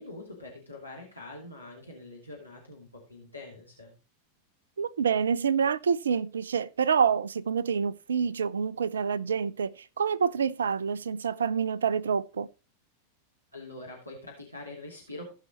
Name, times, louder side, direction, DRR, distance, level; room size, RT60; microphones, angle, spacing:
voice 1, 0.0-3.9 13.5-15.3, left 2 dB, 90° left, 3.1 m, -44 dB
voice 2, 4.8-12.5, right 6 dB, 70° right, 0.5 m, -27 dB
17.0 x 5.8 x 3.0 m
figure-of-eight pair, 90°, 0 cm